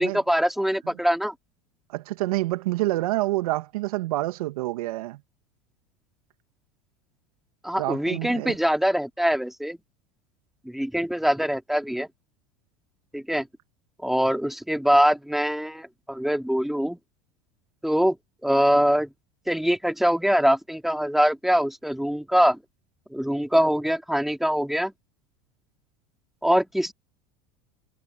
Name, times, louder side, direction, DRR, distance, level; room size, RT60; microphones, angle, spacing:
voice 1, 0.0-1.3 7.6-9.8 10.7-12.1 13.1-13.5 14.0-17.0 17.8-18.2 18.4-19.1 19.5-22.6 23.1-24.9 26.4-26.9, equal, ahead, 3.7 m, -23 dB
voice 2, 1.9-5.2 7.8-8.6, right 18 dB, 75° right, 2.3 m, -27 dB
hypercardioid pair, 90°, 19 cm